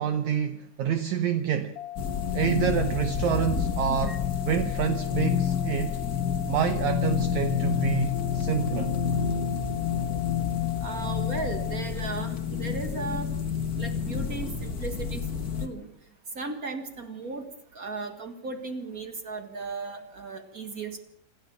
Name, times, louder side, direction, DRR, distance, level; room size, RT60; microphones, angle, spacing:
voice 1, 0.0-1.8 2.3-6.0 6.5-8.9, right 8 dB, 70° right, 1.9 m, -28 dB
sound 1, 1.8-11.8, left 17 dB, 70° left, 2.4 m, -39 dB
sound 2, 2.0-15.7, left 7 dB, 40° left, 1.3 m, -29 dB
voice 2, 10.8-13.3 13.8-15.2 15.6-15.9 16.3-21.0, right 3 dB, 45° right, 1.2 m, -36 dB
27.5 x 13.5 x 7.1 m
omnidirectional pair, 4.3 m